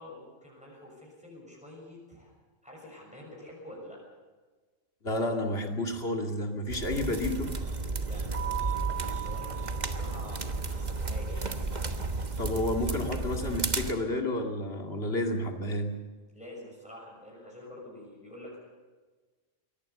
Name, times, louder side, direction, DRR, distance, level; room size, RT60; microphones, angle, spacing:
voice 1, 0.0-2.3 2.6-4.0 8.0-11.5 16.3-18.6, left 1 dB, 5° right, -3 dB, 6.5 m, -47 dB
voice 2, 5.0-7.5 12.4-15.9, left 1 dB, 55° left, 3 dB, 2.7 m, -31 dB
sound 1, 6.7-13.9, right 3 dB, 35° right, 1.3 m, -33 dB
Keyboard (musical), 8.3-10.9, right 16 dB, 20° left, 4.6 m, -38 dB
24.0 x 18.0 x 6.9 m, 1.3 s
omnidirectional pair, 1.3 m